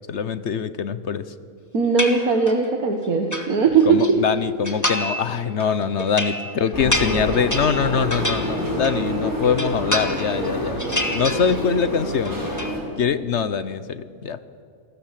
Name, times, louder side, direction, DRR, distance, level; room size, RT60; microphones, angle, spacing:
voice 1, 0.1-1.2 3.9-10.8 11.1-12.4 13.0-14.4, left 6 dB, 55° left, 14 dB, 1.1 m, -23 dB
voice 2, 1.7-3.9, right 5 dB, 80° right, 3 dB, 2.1 m, -19 dB
sound 1, 2.0-2.7 3.0-4.1 4.6-5.3 5.6-9.1 9.4-10.5 10.8-11.9 12.1-12.8, left 1 dB, 10° left, 1.6 m, -28 dB
sound 2, 6.7-12.8, equal, 15° right, 5.9 m, -27 dB
28.5 x 20.0 x 7.6 m, 2.2 s
omnidirectional pair, 1.5 m